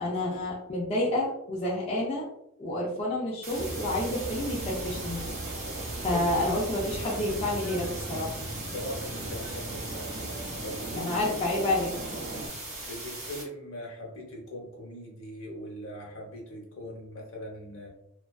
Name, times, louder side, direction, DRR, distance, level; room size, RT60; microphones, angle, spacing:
voice 1, 0.0-2.3 2.6-5.2 6.0-8.4 10.9-11.9, left 1 dB, 25° left, -5 dB, 0.4 m, -29 dB
sound 1, 3.4-13.4, right 1 dB, 30° right, 0.8 m, -40 dB
sound 2, 3.5-12.5, right 2 dB, 50° right, 0.5 m, -38 dB
voice 2, 8.7-10.1 10.6-11.1 12.3-17.9, equal, 65° left, -1 dB, 0.8 m, -41 dB
2.4 x 2.3 x 2.3 m, 0.78 s
head